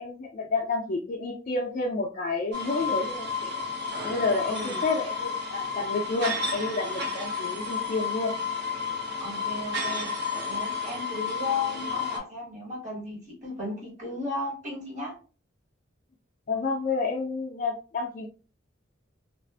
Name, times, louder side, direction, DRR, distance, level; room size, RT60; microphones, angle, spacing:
voice 1, 0.0-3.5 4.0-8.4 16.5-18.3, left 3 dB, 45° left, 0 dB, 0.4 m, -30 dB
sound 1, 2.5-12.2, left 4 dB, 60° right, 0.8 m, -31 dB
voice 2, 4.4-4.8 9.2-10.1 10.4-15.1, left 3 dB, 40° right, -4 dB, 1.3 m, -35 dB
2.5 x 2.4 x 2.3 m, 0.35 s
head